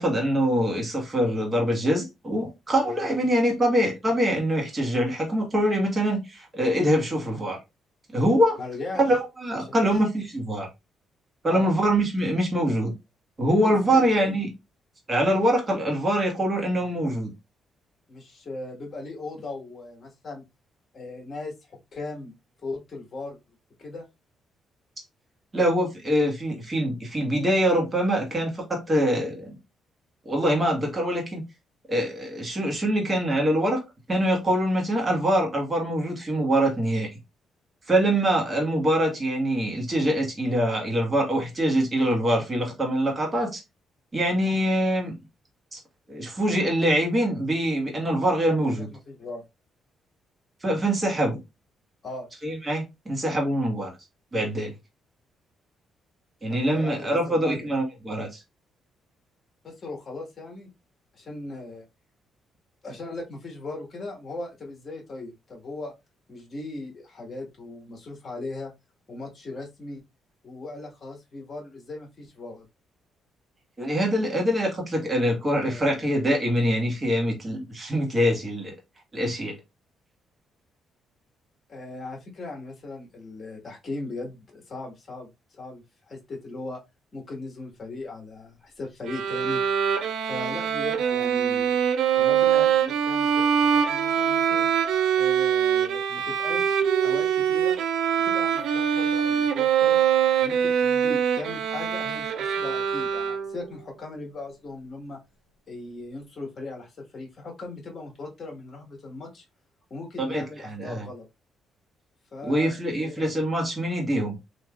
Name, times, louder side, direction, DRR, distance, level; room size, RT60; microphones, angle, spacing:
voice 1, 0.0-7.6 8.1-8.6 9.0-10.1 10.3-10.7 11.4-12.9 13.4-14.5 15.1-17.3 25.5-29.5 30.2-31.4 31.9-33.8 34.1-37.1 37.9-43.6 44.1-45.1 45.7-45.8 46.1-48.9 50.6-51.4 52.4-53.9 54.3-54.7 56.4-58.4 73.8-78.7 79.1-79.5 110.2-111.1 112.4-114.4, equal, 25° right, 1.4 m, -24 dB
voice 2, 8.6-9.0 9.5-10.0 11.5-11.7 13.6-14.4 18.1-20.4 20.9-22.3 22.6-23.4 23.8-24.0 48.6-49.4 52.0-52.3 56.5-57.7 59.6-60.7 61.1-61.8 62.8-65.9 66.3-68.7 69.1-70.0 70.4-72.6 75.6-76.2 81.7-86.8 87.1-89.6 90.2-91.8 92.1-94.6 95.2-97.7 98.2-100.0 100.4-105.2 105.7-109.4 109.9-111.2 112.3-113.3, left 2 dB, 40° left, 1.5 m, -38 dB
Bowed string instrument, 89.1-103.7, right 8 dB, 80° right, 0.4 m, -23 dB
3.2 x 2.8 x 2.4 m
cardioid pair, 90°, 0 cm